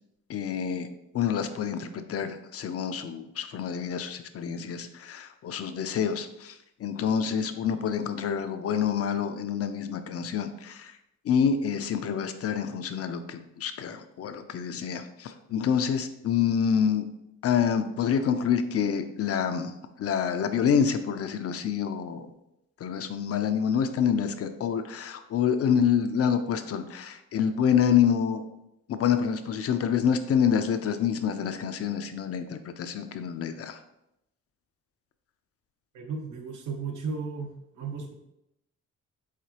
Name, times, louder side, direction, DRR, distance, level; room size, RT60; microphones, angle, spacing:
voice 1, 0.3-0.9 1.1-11.0 11.2-17.0 17.4-22.3 22.8-28.4 28.9-33.8, left 7 dB, 50° left, 9 dB, 0.5 m, -27 dB
voice 2, 35.9-38.1, right 4 dB, 80° right, 2 dB, 0.9 m, -35 dB
4.9 x 3.6 x 2.8 m, 0.84 s
cardioid pair, 90°, 30 cm